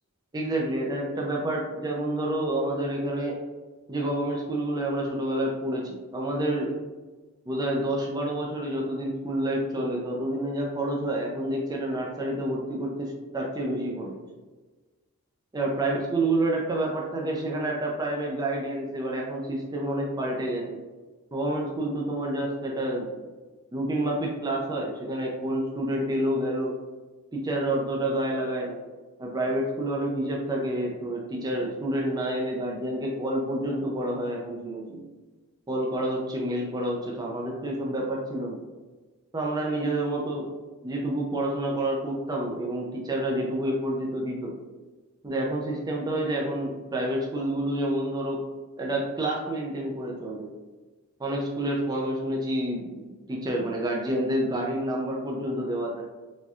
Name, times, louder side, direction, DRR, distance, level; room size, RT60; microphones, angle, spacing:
voice 1, 0.3-3.4 3.9-6.8 7.5-14.2 15.5-20.8 21.3-23.2 23.7-26.8 27.3-28.8 29.2-35.0 35.7-38.6 39.3-40.5 40.8-44.6 45.2-48.4 48.8-50.5 51.2-56.0, right 1 dB, 20° right, -1 dB, 0.4 m, -28 dB
4.1 x 2.3 x 2.4 m, 1.3 s
head